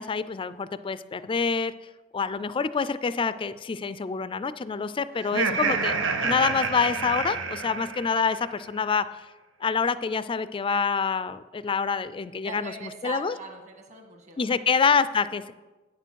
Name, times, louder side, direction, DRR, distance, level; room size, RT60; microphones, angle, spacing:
voice 1, 0.0-1.7 2.1-5.9 6.2-9.1 9.6-13.3 14.4-15.5, left 5 dB, 25° left, 15 dB, 0.3 m, -26 dB
Laughter, 5.2-8.4, right 5 dB, 80° right, 0.8 m, -28 dB
voice 2, 12.4-14.5, right 3 dB, 40° right, 3 dB, 1.6 m, -41 dB
9.1 x 6.7 x 6.3 m, 1.2 s
head